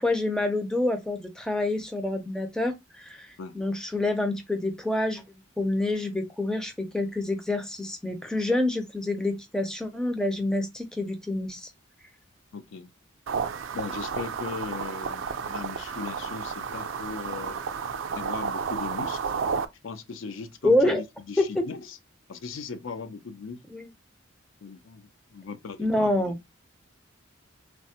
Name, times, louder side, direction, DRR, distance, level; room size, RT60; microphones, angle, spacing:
voice 1, 0.0-5.2 5.6-11.7 20.6-21.0 21.4-21.6 23.7-23.9 25.8-26.4, left 1 dB, 5° left, 0.4 m, -27 dB
voice 2, 12.5-12.9 13.7-17.6 18.1-19.4 19.8-22.0 22.3-23.6 24.6-26.3, left 5 dB, 70° left, 0.4 m, -38 dB
sound 1, 13.3-19.7, right 6 dB, 70° right, 0.4 m, -32 dB
3.2 x 2.0 x 2.7 m
head